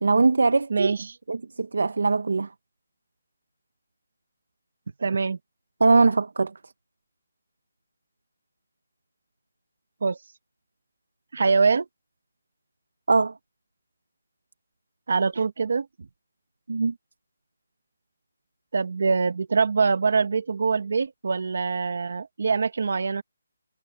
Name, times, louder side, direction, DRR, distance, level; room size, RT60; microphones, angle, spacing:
voice 1, 0.0-0.9 1.3-2.5 5.8-6.5 13.1-13.3 16.7-16.9, right 3 dB, 65° right, 1.0 m, -21 dB
voice 2, 0.7-1.1 5.0-5.4 10.0-10.2 11.3-11.9 15.1-15.9 18.7-23.2, right 4 dB, 45° right, 1.4 m, -24 dB
hypercardioid pair, 180°, 0 cm